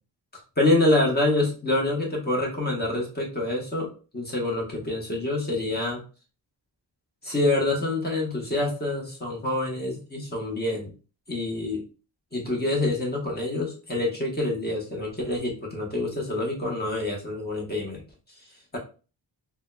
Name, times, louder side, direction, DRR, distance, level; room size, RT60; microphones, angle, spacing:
voice 1, 0.6-6.0 7.2-10.9 11.3-11.8 12.3-18.0, left 2 dB, 20° left, -2 dB, 1.0 m, -26 dB
3.5 x 2.2 x 2.2 m, 0.35 s
wide cardioid pair, 115°, 45 cm